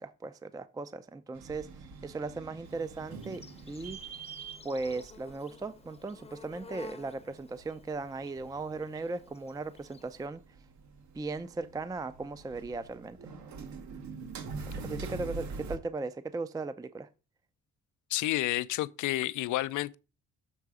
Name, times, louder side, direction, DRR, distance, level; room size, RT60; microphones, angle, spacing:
voice 1, 0.0-1.7 2.0-4.0 4.6-10.4 11.1-13.2 14.7-17.1, right 3 dB, 10° right, 0.4 m, -37 dB
sound 1, 1.3-15.8, right 4 dB, 70° right, 1.4 m, -45 dB
Insect, 2.6-10.3, left 4 dB, 20° left, 0.7 m, -53 dB
voice 2, 18.1-19.9, left 16 dB, 80° left, 0.5 m, -30 dB
6.9 x 3.8 x 4.8 m
cardioid pair, 90°, 30 cm